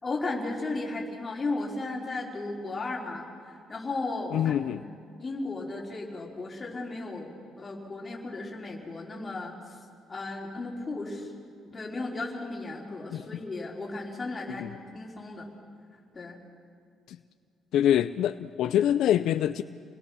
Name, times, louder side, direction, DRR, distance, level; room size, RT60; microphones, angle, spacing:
voice 1, 0.0-4.9 5.2-9.5 10.1-11.3 11.6-14.7 14.9-15.5 16.1-16.4, left 2 dB, 20° left, -2 dB, 4.0 m, -35 dB
voice 2, 4.3-4.8 13.1-13.2 14.6-14.7 17.1-17.2 17.7-19.6, left 11 dB, 70° left, 11 dB, 0.5 m, -25 dB
29.5 x 20.5 x 6.3 m, 2.4 s
cardioid pair, 145°, 0 cm